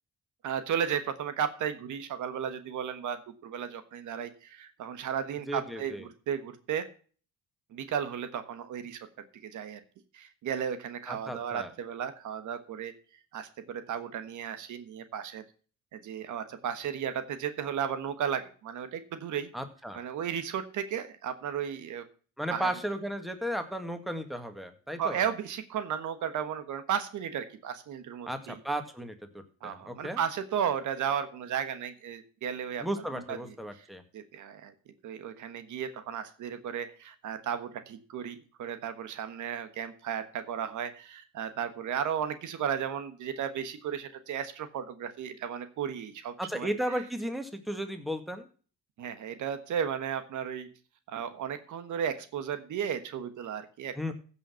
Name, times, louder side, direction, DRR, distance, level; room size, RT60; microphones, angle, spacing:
voice 1, 0.4-6.9 7.7-9.0 9.4-9.8 10.1-12.9 13.3-15.4 15.9-19.5 19.9-22.0 22.5-22.7 25.0-28.6 29.6-32.8 33.3-33.4 34.1-34.7 35.0-46.7 49.0-50.7 51.1-53.9, right 8 dB, 75° right, 10 dB, 1.4 m, -34 dB
voice 2, 5.5-6.0 11.1-11.7 19.5-20.0 22.4-25.2 28.3-30.2 32.8-34.0 46.4-48.5 54.0-54.1, equal, ahead, 7 dB, 1.9 m, -35 dB
15.5 x 5.7 x 5.7 m, 0.41 s
cardioid pair, 90°, 30 cm